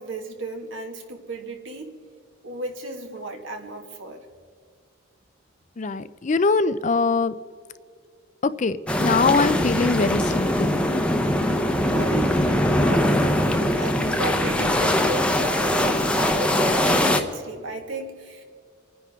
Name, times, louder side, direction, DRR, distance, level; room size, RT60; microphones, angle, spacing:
voice 1, 0.0-2.0 2.4-4.2 11.9-12.5 12.8-18.4, right 2 dB, 65° right, 4 dB, 1.9 m, -34 dB
voice 2, 5.8-7.3 8.4-11.0, left 4 dB, 35° left, 13 dB, 0.4 m, -23 dB
sound 1, 8.9-17.2, left 1 dB, 5° left, 0.8 m, -22 dB
29.0 x 10.0 x 3.6 m, 2.1 s
head